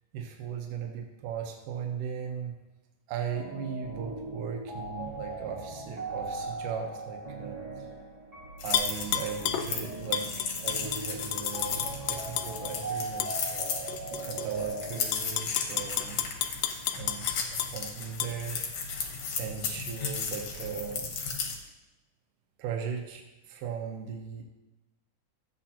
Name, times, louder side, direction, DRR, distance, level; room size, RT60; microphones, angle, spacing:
voice 1, 0.1-2.6 3.1-7.9 8.6-13.9 14.2-16.3 16.8-18.9 19.4-21.1 22.6-24.4, right 7 dB, 75° right, 2 dB, 2.4 m, -38 dB
sound 1, 3.3-15.1, right 2 dB, 50° right, 0.8 m, -39 dB
sound 2, 8.6-21.6, left 5 dB, 60° left, 2.0 m, -36 dB
Tap / Glass, 8.7-9.7 10.1-12.7 13.2-13.3 13.9-14.5 14.9-17.7 18.2-18.3, left 10 dB, 90° left, 2.3 m, -31 dB
13.0 x 8.4 x 2.9 m, 1.1 s
omnidirectional pair, 3.8 m